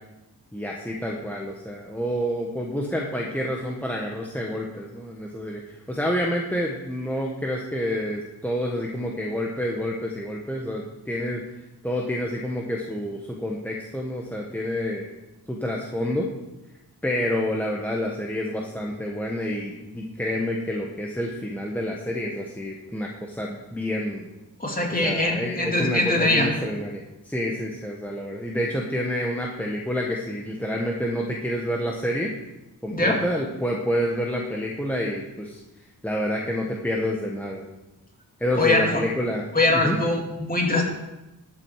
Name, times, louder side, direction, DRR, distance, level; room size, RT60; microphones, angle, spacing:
voice 1, 0.5-11.4 11.8-15.0 15.5-16.3 17.0-24.3 24.9-32.3 32.8-35.6 36.0-37.6 38.4-39.5 39.7-40.0, equal, 5° left, -2 dB, 1.4 m, -28 dB
voice 2, 24.6-26.5 32.9-33.2 38.6-39.0 39.5-40.8, left 2 dB, 20° left, 0 dB, 2.6 m, -22 dB
12.5 x 8.8 x 4.9 m, 0.98 s
wide cardioid pair, 90°, 38 cm